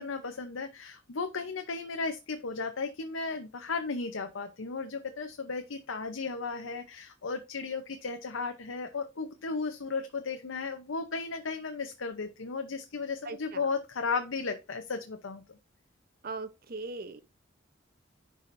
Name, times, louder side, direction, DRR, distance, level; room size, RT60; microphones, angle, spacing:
voice 1, 0.0-15.4, left 4 dB, 90° left, 0.8 m, -35 dB
voice 2, 13.2-13.7 16.2-17.2, right 3 dB, 50° right, 0.8 m, -39 dB
10.5 x 4.9 x 2.6 m
head